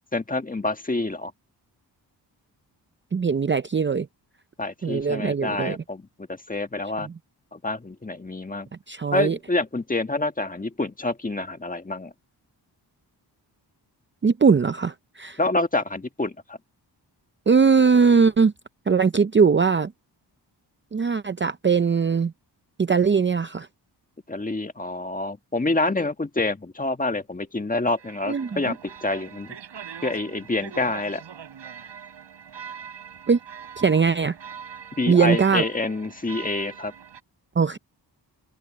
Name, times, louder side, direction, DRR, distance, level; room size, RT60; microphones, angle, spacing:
voice 1, 0.1-1.3 4.6-6.0 6.3-7.1 7.5-8.7 9.1-12.1 15.4-16.6 24.3-29.6 30.0-31.2 35.0-36.9, left 2 dB, 20° left, 1.5 m, -27 dB
voice 2, 3.1-4.1 4.8-5.8 7.0-7.1 8.9-9.4 14.2-15.4 17.5-18.5 18.9-19.9 20.9-22.3 22.8-23.7 28.3-28.7 33.3-33.4 33.8-34.4 35.1-35.6 37.6-37.8, right 5 dB, 25° right, 0.6 m, -20 dB
sound 1, 28.0-37.2, right 7 dB, 85° right, 4.3 m, -42 dB
cardioid pair, 85°, 42 cm